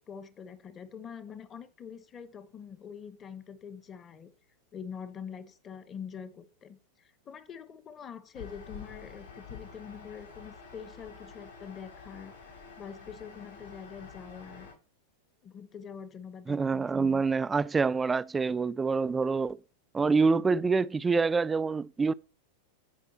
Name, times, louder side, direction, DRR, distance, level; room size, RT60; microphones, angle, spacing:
voice 1, 0.0-4.3 4.7-6.8 7.3-12.3 12.6-14.7 15.4-17.2, left 7 dB, 25° left, 1.1 m, -45 dB
sound 1, 8.3-14.7, left 5 dB, 65° left, 5.3 m, -48 dB
voice 2, 16.5-19.6 19.9-22.1, right 4 dB, 15° right, 0.3 m, -26 dB
15.5 x 5.2 x 3.0 m
figure-of-eight pair, 90°, 0 cm